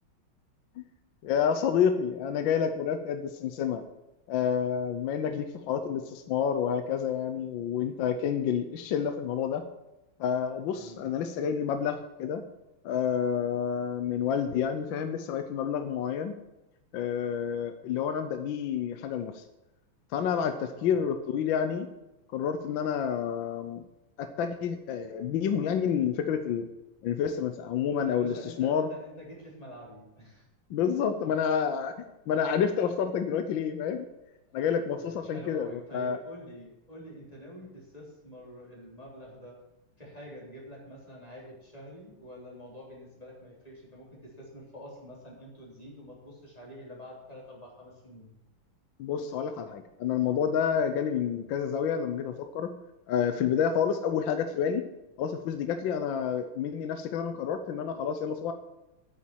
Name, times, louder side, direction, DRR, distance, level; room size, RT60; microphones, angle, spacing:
voice 1, 1.2-3.8 4.3-9.6 10.2-12.4 12.8-16.3 16.9-19.4 20.1-21.9 22.3-23.8 24.2-26.7 27.0-28.9 30.7-31.9 32.3-34.1 34.5-36.2 49.0-52.7 53.1-54.8 55.2-58.5, left 7 dB, 70° left, 8 dB, 1.4 m, -29 dB
voice 2, 10.7-11.1 20.6-21.0 28.0-30.5 30.8-31.2 34.9-39.6 40.0-48.3, equal, 15° left, -3 dB, 3.5 m, -47 dB
8.8 x 7.4 x 8.6 m, 0.96 s
omnidirectional pair, 2.4 m